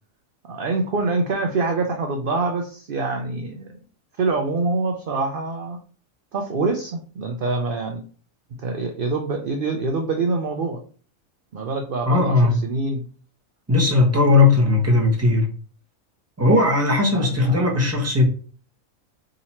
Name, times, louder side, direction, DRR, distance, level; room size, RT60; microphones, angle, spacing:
voice 1, 0.4-3.7 4.2-5.8 6.3-8.0 8.6-10.8 11.5-13.0 17.1-17.7, right 3 dB, 55° right, 0.6 m, -25 dB
voice 2, 12.1-12.6 13.7-15.5 16.4-18.3, left 3 dB, 10° right, 1.0 m, -17 dB
3.8 x 2.9 x 4.2 m
omnidirectional pair, 1.5 m